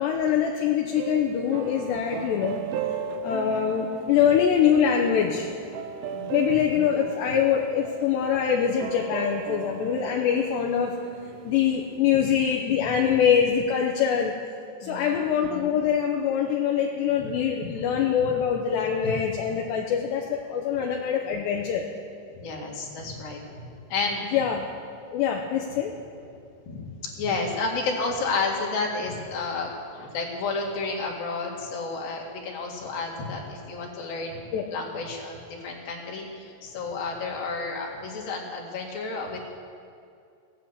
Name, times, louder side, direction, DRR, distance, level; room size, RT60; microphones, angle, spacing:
voice 1, 0.0-2.6 3.2-5.5 6.3-10.9 11.4-14.3 14.8-21.8 24.3-24.6 25.1-25.9 34.5-34.6, left 8 dB, 75° left, 1 dB, 2.7 m, -24 dB
sound 1, 0.9-12.0, right 7 dB, 80° right, 2.6 m, -36 dB
voice 2, 14.8-15.2 17.2-17.3 17.7-17.9 19.0-19.2 22.3-23.4 23.9-24.2 26.7-26.9 27.2-34.4 34.7-39.4, left 3 dB, 55° left, -1 dB, 3.3 m, -31 dB
16.5 x 10.0 x 8.1 m, 2.4 s
omnidirectional pair, 5.7 m